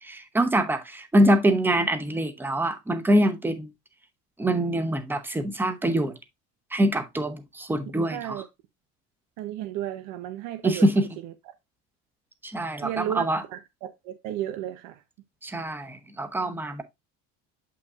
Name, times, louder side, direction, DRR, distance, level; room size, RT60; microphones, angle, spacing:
voice 1, 0.0-3.7 4.4-6.1 6.7-8.4 10.6-11.1 12.4-13.4 15.4-16.8, right 1 dB, 5° right, 0.8 m, -24 dB
voice 2, 8.1-8.4 9.4-10.9 11.2-11.5 12.8-15.0, right 12 dB, 90° right, 0.9 m, -33 dB
8.0 x 5.7 x 2.4 m
cardioid pair, 160°, 30 cm